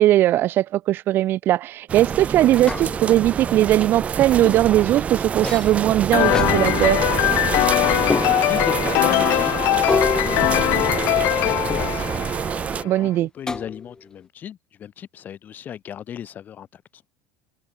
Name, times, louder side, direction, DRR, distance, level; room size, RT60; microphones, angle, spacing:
voice 1, 0.0-7.0 12.8-13.3, right 14 dB, 45° right, 0.7 m, -19 dB
sound 1, 1.9-12.8, right 7 dB, 25° right, 1.3 m, -26 dB
sound 2, 2.7-3.3 4.4-4.8 5.4-5.8 6.3-6.5 8.1-8.7 9.9-11.2 11.7-12.2 13.5-14.1, left 3 dB, 15° left, 4.4 m, -28 dB
sound 3, 6.1-12.8, left 20 dB, 55° left, 0.6 m, -21 dB
voice 2, 8.2-12.3 12.7-17.0, left 9 dB, 35° left, 7.5 m, -36 dB
cardioid pair, 135°, 5 cm